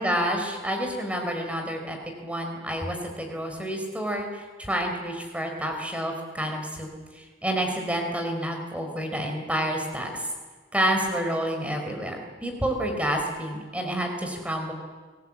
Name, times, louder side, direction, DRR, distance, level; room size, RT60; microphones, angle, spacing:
voice 1, 0.0-10.3 10.7-14.7, equal, 5° right, 3 dB, 4.3 m, -29 dB
29.0 x 18.5 x 8.6 m, 1.4 s
head